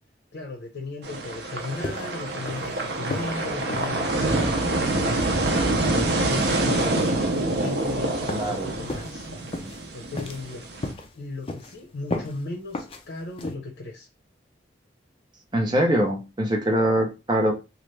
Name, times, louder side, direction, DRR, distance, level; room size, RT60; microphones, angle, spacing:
voice 1, 0.3-4.5 4.8-9.6 9.9-14.1, left 3 dB, 75° left, 0.7 m, -37 dB
sound 1, 1.0-10.9, right 2 dB, 60° right, 0.6 m, -26 dB
sound 2, 1.8-2.2 2.5-2.8 3.1-3.4 3.7-3.9 4.3-4.5 5.0-5.2 5.6-5.8 6.3-6.6 7.0-7.2 7.6-7.9 8.3-8.6 8.9-9.1 9.5-9.8 10.2-10.5 10.8-11.1 11.5-11.8 12.1-12.4 12.7-13.0 13.4-13.6, left 2 dB, 30° left, 0.4 m, -33 dB
voice 2, 8.3-8.8 15.5-17.5, right 1 dB, 25° right, 0.7 m, -23 dB
3.1 x 2.4 x 3.3 m
head